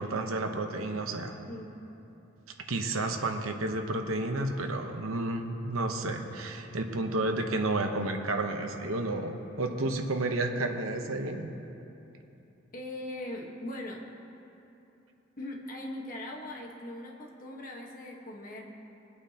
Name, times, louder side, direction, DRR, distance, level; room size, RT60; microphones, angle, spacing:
voice 1, 0.0-1.4 2.7-11.5, right 2 dB, 90° right, 4 dB, 1.0 m, -31 dB
voice 2, 9.4-9.8 12.7-14.0 15.4-18.7, left 1 dB, 40° left, 0 dB, 1.3 m, -40 dB
22.5 x 8.6 x 2.9 m, 2.9 s
head